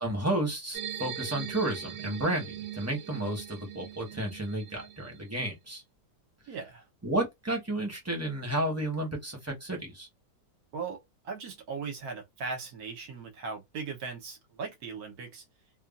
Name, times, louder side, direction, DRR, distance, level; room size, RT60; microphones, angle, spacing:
voice 1, 0.0-5.8 7.0-10.1, right 1 dB, 10° right, 0.9 m, -32 dB
sound 1, 0.7-5.4, right 10 dB, 80° right, 1.2 m, -41 dB
voice 2, 6.5-6.8 10.7-15.4, right 5 dB, 65° right, 1.3 m, -38 dB
3.0 x 2.4 x 2.4 m
omnidirectional pair, 1.9 m